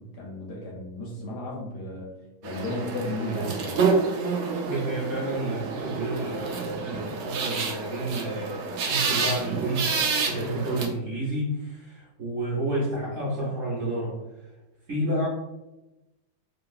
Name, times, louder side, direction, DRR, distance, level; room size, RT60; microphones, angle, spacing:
voice 1, 0.0-2.1 2.4-3.8, left 1 dB, 75° left, -1 dB, 1.2 m, -33 dB
sound 1, 2.4-10.9, right 4 dB, 75° right, 1.2 m, -28 dB
voice 2, 4.6-14.2 14.9-15.3, right 1 dB, 50° right, -7 dB, 0.9 m, -30 dB
2.9 x 2.5 x 2.3 m, 0.99 s
omnidirectional pair, 1.9 m